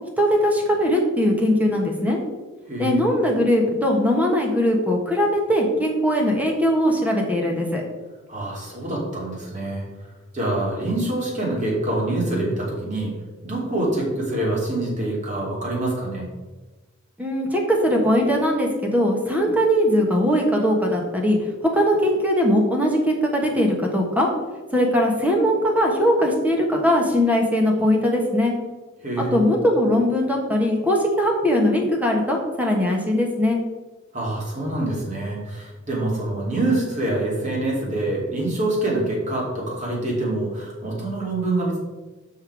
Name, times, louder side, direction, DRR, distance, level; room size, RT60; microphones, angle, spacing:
voice 1, 0.2-2.2 2.8-7.8 17.2-21.4 21.7-24.3 24.7-28.5 29.3-33.6, equal, 10° right, 0 dB, 1.3 m, -20 dB
voice 2, 2.6-3.0 8.3-9.9 10.3-13.1 13.4-16.3 29.0-29.4 34.1-41.8, right 2 dB, 35° right, -3 dB, 2.6 m, -25 dB
7.6 x 5.6 x 4.8 m, 1.2 s
head